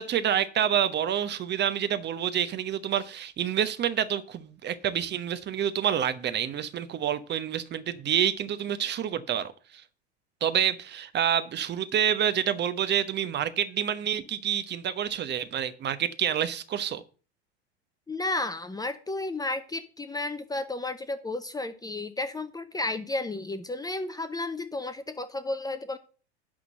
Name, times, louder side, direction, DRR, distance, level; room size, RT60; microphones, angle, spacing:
voice 1, 0.0-9.8 10.4-17.0, right 9 dB, 30° right, 1.0 m, -28 dB
voice 2, 18.1-26.0, left 2 dB, 10° left, 0.7 m, -32 dB
11.0 x 3.8 x 7.6 m
hypercardioid pair, 95°, 33 cm